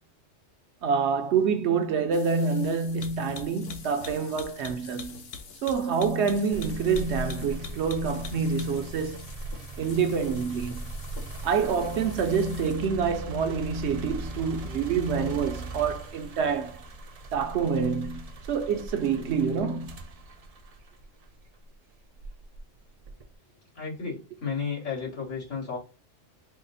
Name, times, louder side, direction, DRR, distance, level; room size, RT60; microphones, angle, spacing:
voice 1, 0.8-5.3 5.6-9.3 9.8-10.8 11.4-16.8 17.3-20.0, right 5 dB, 70° right, 0.8 m, -27 dB
sound 1, 2.1-13.0, left 5 dB, 60° left, 0.8 m, -44 dB
sound 2, 6.5-21.5 22.1-23.3, right 3 dB, 45° right, 0.5 m, -40 dB
voice 2, 23.8-25.8, left 5 dB, 80° left, 2.2 m, -33 dB
4.8 x 2.0 x 3.9 m
omnidirectional pair, 1.3 m